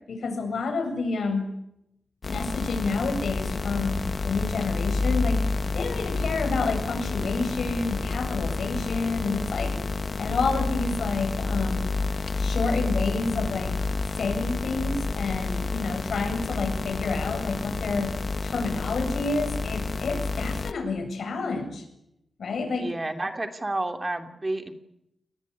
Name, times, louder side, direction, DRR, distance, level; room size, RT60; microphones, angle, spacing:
voice 1, 0.1-1.5 2.3-9.8 10.2-11.9 12.4-13.8 14.1-18.2 18.4-21.8 22.4-22.9, left 3 dB, 80° left, 5 dB, 7.7 m, -29 dB
sound 1, 2.2-20.7, left 3 dB, 45° left, 1.1 m, -29 dB
voice 2, 22.7-24.7, right 2 dB, 25° right, 7 dB, 3.0 m, -30 dB
29.0 x 20.5 x 8.5 m, 0.81 s
wide cardioid pair, 115°, 0 cm